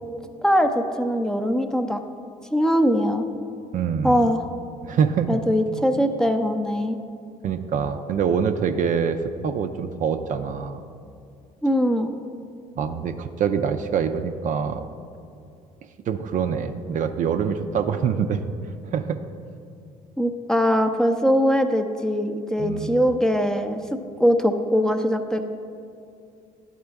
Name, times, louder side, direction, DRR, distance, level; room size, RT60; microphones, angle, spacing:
voice 1, 0.4-2.0 2.5-3.3 4.0-4.4 5.3-7.0 11.6-12.1 20.2-23.8 24.2-25.5, equal, 5° left, 6 dB, 0.6 m, -21 dB
voice 2, 3.7-4.2 4.8-5.4 7.4-10.8 12.8-14.8 16.1-18.4 18.9-19.2 22.6-23.1, right 7 dB, 50° right, 7 dB, 0.4 m, -25 dB
11.5 x 4.4 x 3.5 m, 2.5 s
hypercardioid pair, 60°, 18 cm